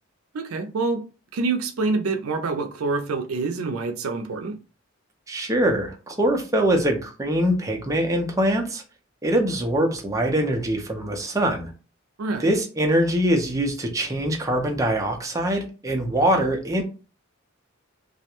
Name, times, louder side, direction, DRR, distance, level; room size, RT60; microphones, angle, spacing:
voice 1, 0.3-1.0 1.3-4.6 12.2-12.5, right 3 dB, 85° right, 0.4 m, -26 dB
voice 2, 5.3-8.8 9.2-11.7 12.4-16.8, right 1 dB, 15° right, 0.5 m, -23 dB
2.3 x 2.1 x 2.9 m
head